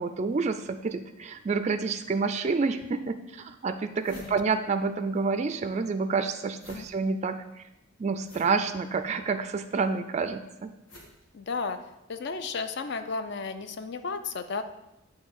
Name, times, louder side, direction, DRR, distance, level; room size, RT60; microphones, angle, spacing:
voice 1, 0.0-7.4 8.0-10.4, right 4 dB, 35° right, 9 dB, 0.3 m, -28 dB
sound 1, 2.8-2.9 3.4-3.5 3.7-5.2 5.5-12.1, left 1 dB, 85° left, 1.7 m, -53 dB
voice 2, 11.3-11.8 12.1-14.6, left 4 dB, 55° left, 9 dB, 0.5 m, -33 dB
8.1 x 3.1 x 6.3 m, 0.90 s
head